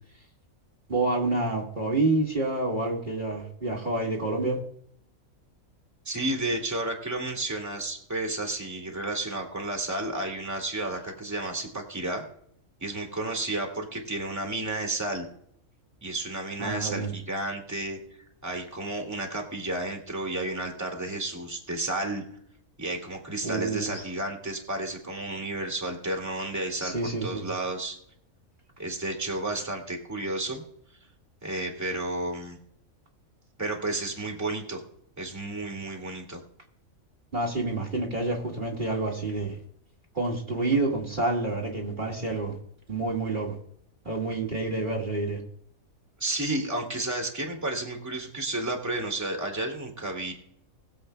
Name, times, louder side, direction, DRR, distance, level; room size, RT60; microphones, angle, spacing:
voice 1, 0.9-4.6 16.6-17.1 23.4-24.0 26.8-27.4 37.3-39.6 40.1-42.6 42.9-43.5 44.1-45.4, right 2 dB, 35° right, -1 dB, 2.0 m, -28 dB
voice 2, 6.1-12.2 12.8-15.2 16.0-18.0 18.4-22.2 22.8-28.0 28.8-30.6 31.4-32.6 33.6-34.8 35.2-36.4 46.2-50.3, right 2 dB, 10° right, 1 dB, 2.0 m, -32 dB
21.0 x 7.7 x 2.2 m, 0.69 s
omnidirectional pair, 1.5 m